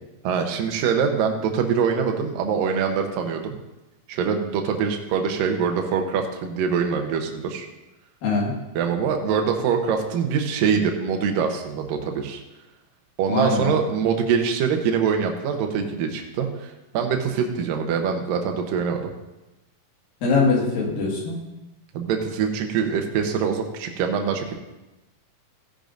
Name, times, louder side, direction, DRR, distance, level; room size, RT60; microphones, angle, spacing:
voice 1, 0.2-3.5 4.1-7.7 8.8-12.4 13.2-19.1 21.9-24.5, right 6 dB, 80° right, 3 dB, 2.6 m, -24 dB
voice 2, 8.2-8.6 13.3-13.8 20.2-21.4, left 4 dB, 80° left, -2 dB, 3.7 m, -22 dB
15.5 x 10.0 x 2.6 m, 1.0 s
omnidirectional pair, 4.0 m